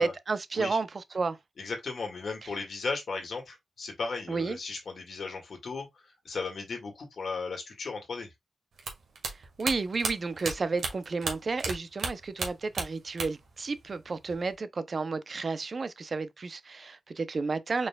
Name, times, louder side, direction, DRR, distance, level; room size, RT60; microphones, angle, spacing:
voice 1, 0.0-1.4 4.3-4.6 9.3-17.9, right 4 dB, 45° right, 0.6 m, -32 dB
voice 2, 1.6-8.3, left 4 dB, 60° left, 1.8 m, -36 dB
sound 1, 8.8-11.7 12.0-13.5 13.8-14.5, right 4 dB, 80° right, 1.6 m, -33 dB
4.8 x 4.2 x 2.2 m
wide cardioid pair, 95°, 0 cm